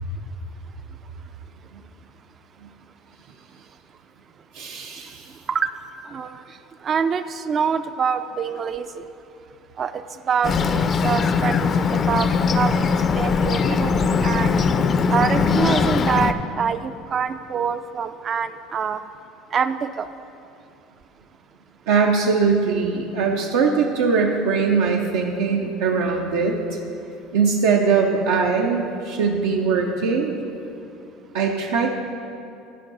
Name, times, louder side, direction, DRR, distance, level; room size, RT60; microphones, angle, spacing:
voice 1, 4.5-5.3 21.9-26.8 27.3-30.3 31.3-31.9, right 5 dB, 85° right, 1 dB, 0.6 m, -21 dB
voice 2, 6.1-6.4 6.8-9.1 9.8-13.9 14.2-14.5 15.1-19.0 19.5-20.1, right 6 dB, 40° right, 11 dB, 0.3 m, -25 dB
Bird, 10.4-16.3, left 5 dB, 35° left, 0.4 m, -20 dB
11.0 x 4.6 x 5.4 m, 2.7 s
supercardioid pair, 100°, 0 cm